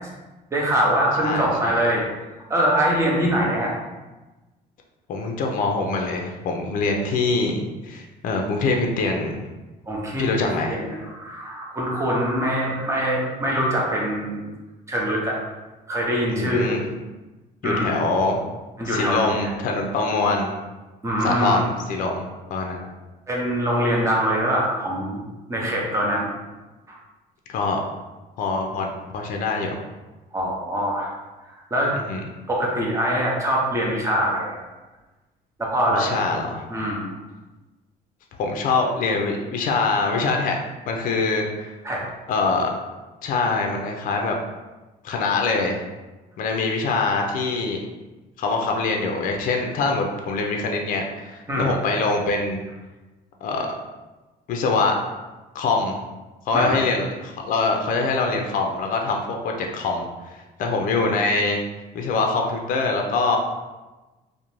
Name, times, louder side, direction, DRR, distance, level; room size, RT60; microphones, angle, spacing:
voice 1, 0.5-2.0 2.5-3.7 9.9-10.3 10.7-14.4 14.9-15.4 15.9-16.8 17.6-17.9 18.8-19.5 21.0-21.7 23.3-25.2 25.5-26.3 26.9-27.0 30.3-31.1 31.7-31.9 32.5-34.6 35.6-36.2 36.7-37.1 41.8-42.1 51.5-51.7 56.5-56.8, equal, 15° right, -3 dB, 0.7 m, -23 dB
voice 2, 1.2-1.8 5.1-9.4 10.2-10.8 16.3-16.8 17.6-18.4 18.8-20.5 21.2-22.2 22.5-22.9 27.5-27.8 28.4-29.8 32.1-32.2 35.9-36.6 38.4-40.6 40.9-41.7 42.3-42.7 43.2-44.3 45.0-45.8 46.4-47.8 48.4-52.6 53.4-53.7 54.5-54.9 55.5-56.0 56.5-61.6 61.9-63.4, left 3 dB, 55° left, 2 dB, 0.4 m, -24 dB
2.5 x 2.0 x 3.0 m, 1.1 s
cardioid pair, 110°, 17 cm